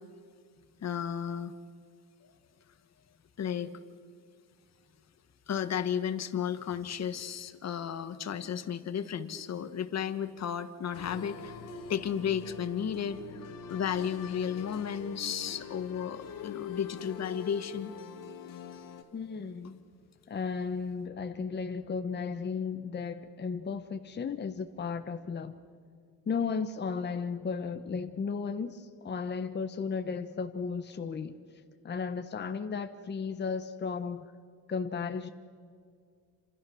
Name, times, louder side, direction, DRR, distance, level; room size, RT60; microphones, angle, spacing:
voice 1, 0.8-1.5 3.4-3.7 5.5-11.5 11.9-17.9, left 8 dB, 45° left, 11 dB, 1.6 m, -33 dB
sound 1, 10.9-19.0, left 6 dB, 65° left, 2.3 m, -44 dB
voice 2, 19.1-19.8 20.3-25.6 26.3-31.4 31.8-34.3 34.7-35.3, left 5 dB, 30° left, 8 dB, 1.1 m, -34 dB
28.5 x 27.0 x 6.3 m, 2.2 s
cardioid pair, 125°, 36 cm